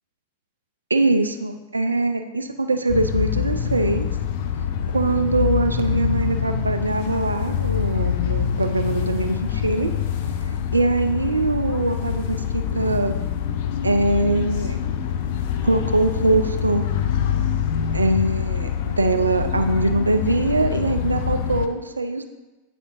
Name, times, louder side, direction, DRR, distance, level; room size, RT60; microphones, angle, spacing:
voice 1, 0.9-4.1 4.9-9.9 10.7-13.1 13.8-14.8 15.6-16.8 17.9-22.3, right 2 dB, 80° right, 7 dB, 0.4 m, -22 dB
sound 1, 2.9-21.7, left 8 dB, 50° left, 0.4 m, -25 dB
8.2 x 4.3 x 2.7 m, 1.1 s
figure-of-eight pair, 90°, 0 cm